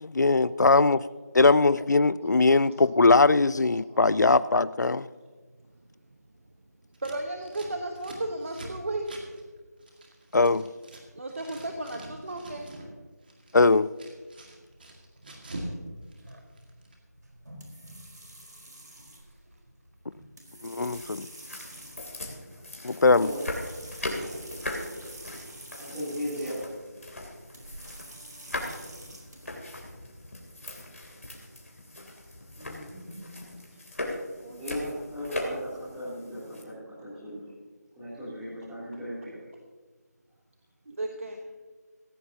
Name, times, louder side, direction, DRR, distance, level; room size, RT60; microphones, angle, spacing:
voice 1, 0.0-1.0 1.3-5.1 10.3-10.6 13.5-13.9 20.6-21.3 22.8-23.3, left 3 dB, 90° left, 18 dB, 0.4 m, -21 dB
Scissors, 6.9-11.0 11.3-12.9 13.2-15.8 16.0-16.9, right 1 dB, 35° right, 2.0 m, -44 dB
voice 2, 7.0-9.1 11.1-12.7 33.2-33.3 33.7-33.9 34.4-34.6 40.9-41.4, right 2 dB, 50° right, 3 dB, 1.2 m, -35 dB
sound 1, 14.6-29.5, right 1 dB, 75° right, 4.3 m, -48 dB
sound 2, 20.8-36.6, left 1 dB, 55° left, 3.1 m, -39 dB
voice 3, 24.1-24.5 25.7-26.7 32.6-33.7 34.6-37.5 38.0-39.5, equal, 5° right, -11 dB, 3.1 m, -37 dB
17.0 x 15.5 x 2.9 m, 1.4 s
figure-of-eight pair, 170°, 9 cm